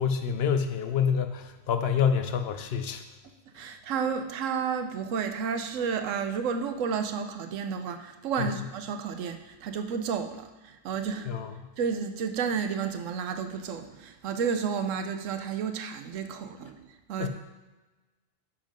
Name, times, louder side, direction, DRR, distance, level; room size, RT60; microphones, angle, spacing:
voice 1, 0.0-3.0 11.3-11.5 17.2-17.3, left 7 dB, 60° left, 8 dB, 0.8 m, -27 dB
voice 2, 3.5-11.3 11.8-17.3, right 6 dB, 80° right, 7 dB, 1.1 m, -31 dB
7.3 x 5.8 x 5.1 m, 1.2 s
omnidirectional pair, 1.3 m